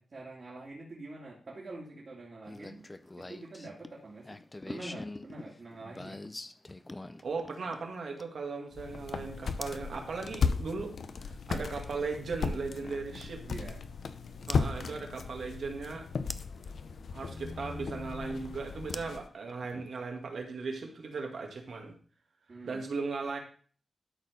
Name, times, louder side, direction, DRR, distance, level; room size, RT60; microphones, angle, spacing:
voice 1, 0.0-2.8 3.2-4.4 4.6-6.2 13.4-13.8 22.5-22.8, right 2 dB, 45° right, -5 dB, 2.6 m, -45 dB
sound 1, 2.5-8.5 9.6-9.9 11.7-11.8 14.5-14.6 16.3-16.7 18.9-19.9, left 2 dB, 20° left, 0.5 m, -44 dB
voice 2, 7.2-13.4 14.5-16.1 17.1-22.0 22.7-23.4, right 4 dB, 70° right, 2 dB, 2.1 m, -37 dB
sound 2, 8.7-19.3, left 5 dB, 70° left, 0.7 m, -36 dB
12.5 x 4.4 x 5.1 m, 0.43 s
wide cardioid pair, 105°, 0 cm